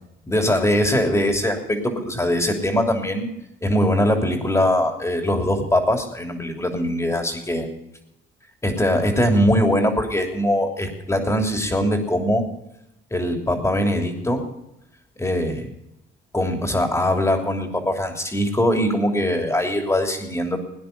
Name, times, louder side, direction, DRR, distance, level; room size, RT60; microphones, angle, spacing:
voice 1, 0.3-3.3 3.6-7.7 8.6-12.4 13.1-14.4 15.2-15.6 16.3-20.6, left 1 dB, 15° left, 3 dB, 3.0 m, -21 dB
18.0 x 9.9 x 5.3 m, 0.86 s
cardioid pair, 90°, 20 cm